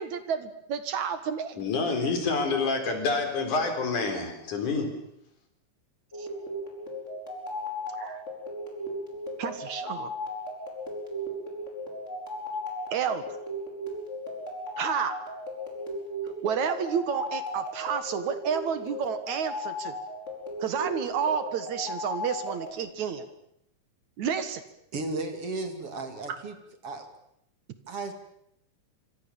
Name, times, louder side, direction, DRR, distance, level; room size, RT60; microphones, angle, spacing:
voice 1, 0.0-1.6 6.2-6.3 8.0-8.2 9.4-10.1 12.9-13.2 14.8-15.1 16.4-20.0 20.6-23.3 24.2-24.6, right 7 dB, 65° right, 11 dB, 2.9 m, -30 dB
voice 2, 1.6-4.9, left 4 dB, 70° left, 5 dB, 5.5 m, -27 dB
sound 1, 6.1-22.7, left 1 dB, 20° left, 5.3 m, -36 dB
voice 3, 24.9-26.6 26.8-27.1 27.9-28.1, right 3 dB, 45° right, 7 dB, 3.3 m, -34 dB
26.5 x 25.0 x 7.3 m, 0.74 s
omnidirectional pair, 3.6 m